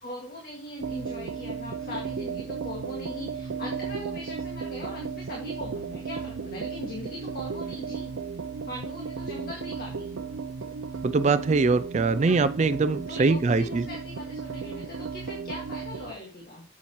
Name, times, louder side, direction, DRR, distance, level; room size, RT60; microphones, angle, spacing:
voice 1, 0.0-8.1 8.7-10.2 12.2-12.4 13.1-16.6, left 1 dB, 45° left, -3 dB, 2.0 m, -40 dB
sound 1, 0.8-16.1, right 5 dB, 90° right, 0.5 m, -35 dB
voice 2, 11.0-13.9, right 4 dB, 35° right, 12 dB, 0.4 m, -23 dB
9.5 x 7.2 x 3.0 m, 0.40 s
head